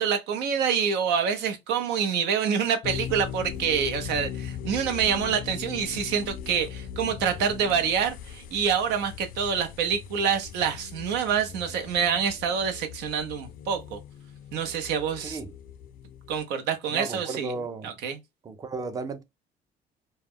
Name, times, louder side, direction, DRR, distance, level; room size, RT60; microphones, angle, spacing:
voice 1, 0.0-14.0 14.5-15.4 16.3-17.5 17.8-18.2, right 7 dB, 85° right, 0.7 m, -26 dB
sound 1, 2.8-16.4, left 9 dB, 60° left, 0.4 m, -40 dB
voice 2, 15.2-15.5 16.9-18.0 18.4-19.2, right 3 dB, 20° right, 0.4 m, -34 dB
2.3 x 2.1 x 3.4 m
cardioid pair, 110°, 17 cm